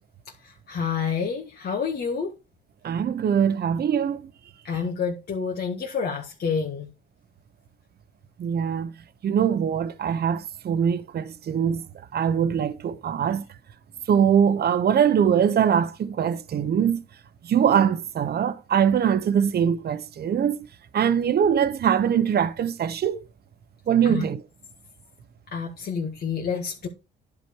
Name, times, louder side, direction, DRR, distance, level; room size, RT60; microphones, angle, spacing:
voice 1, 0.4-2.3 4.6-6.9 24.0-24.2 25.5-26.9, left 6 dB, 55° left, 1.9 m, -28 dB
voice 2, 2.8-4.2 8.4-8.9 9.2-11.8 12.1-13.4 14.1-17.0 17.5-20.6 20.9-23.2 23.9-24.4, right 8 dB, 55° right, 0.9 m, -22 dB
10.5 x 5.0 x 4.8 m
cardioid pair, 90°, 20 cm